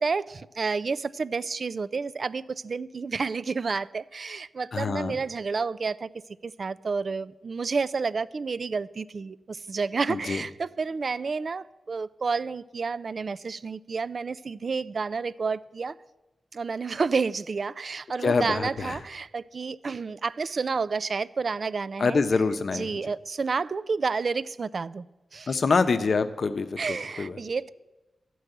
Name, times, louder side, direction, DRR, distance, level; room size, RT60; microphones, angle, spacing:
voice 1, 0.0-6.1 6.4-16.0 16.5-22.2 22.7-25.1 25.3-25.6 26.8-27.7, right 4 dB, 50° right, 0.3 m, -30 dB
voice 2, 4.7-5.2 10.1-10.4 18.2-19.0 22.0-23.0 25.5-27.4, left 4 dB, 55° left, 0.7 m, -26 dB
13.5 x 4.7 x 7.8 m
wide cardioid pair, 125°, 0 cm